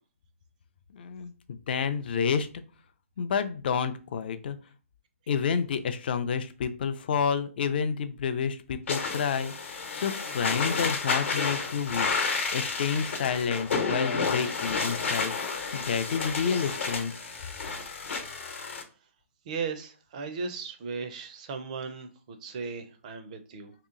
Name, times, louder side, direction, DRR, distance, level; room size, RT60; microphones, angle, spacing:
voice 1, 0.9-2.5 3.2-4.6 5.3-12.1 12.5-15.4 15.7-17.1, left 6 dB, 45° left, 11 dB, 0.4 m, -29 dB
sound 1, 8.9-18.8, left 4 dB, 60° left, 0.9 m, -31 dB
voice 2, 19.5-23.7, right 5 dB, 30° right, 8 dB, 0.4 m, -36 dB
3.0 x 2.8 x 3.7 m, 0.36 s
hypercardioid pair, 160°, 8 cm